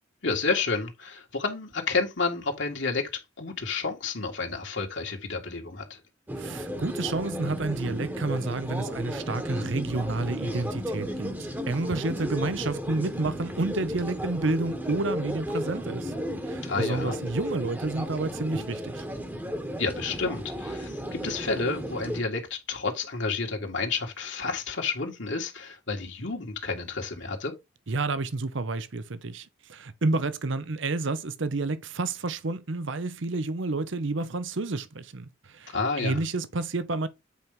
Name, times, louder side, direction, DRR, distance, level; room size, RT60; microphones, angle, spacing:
voice 1, 0.2-3.1 3.4-6.0 16.7-17.2 19.8-27.5 35.7-36.2, left 4 dB, 65° left, 1.9 m, -30 dB
sound 1, 6.3-22.2, equal, 10° right, 1.2 m, -34 dB
voice 2, 6.3-16.1 16.4-19.0 27.9-37.1, right 3 dB, 65° right, 0.7 m, -30 dB
8.3 x 4.6 x 3.6 m
head